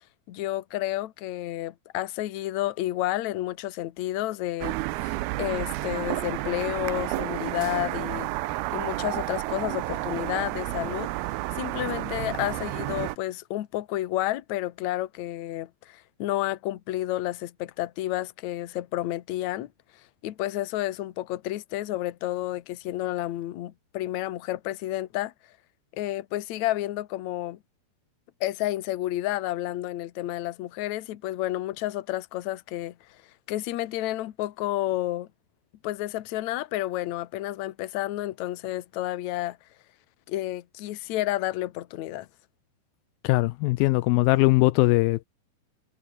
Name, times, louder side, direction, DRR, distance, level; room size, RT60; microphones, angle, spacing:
voice 1, 0.3-8.3 8.7-11.1 11.5-19.7 20.2-25.3 25.9-27.6 28.4-32.9 33.5-35.3 35.8-39.6 40.3-42.3, left 15 dB, 65° left, 1.8 m, -30 dB
sound 1, 4.6-13.2, right 18 dB, 80° right, 2.5 m, -31 dB
voice 2, 43.2-45.3, left 20 dB, 90° left, 2.0 m, -21 dB
omnidirectional pair, 4.8 m